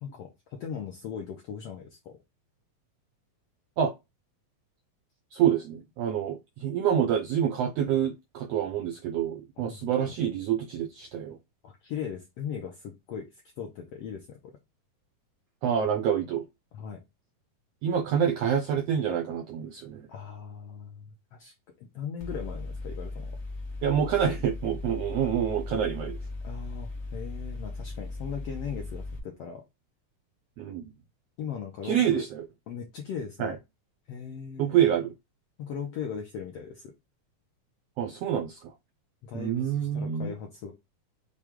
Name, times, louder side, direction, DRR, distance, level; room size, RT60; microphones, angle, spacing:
voice 1, 0.0-2.2 9.6-10.1 11.6-13.3 13.6-14.5 16.7-17.0 20.1-21.5 21.9-23.4 26.4-29.6 31.4-32.3 32.7-33.5 34.1-34.9 35.6-36.9 39.2-40.7, left 7 dB, 80° left, 1.3 m, -38 dB
voice 2, 5.3-11.4 15.6-16.4 17.8-20.1 23.8-26.2 30.6-30.9 31.8-32.4 33.4-33.5 34.6-35.1 38.0-38.7 39.3-40.3, right 9 dB, 85° right, 1.4 m, -27 dB
Mechanical fan, 22.2-29.2, left 2 dB, 65° left, 0.6 m, -37 dB
6.3 x 2.3 x 3.6 m
omnidirectional pair, 3.7 m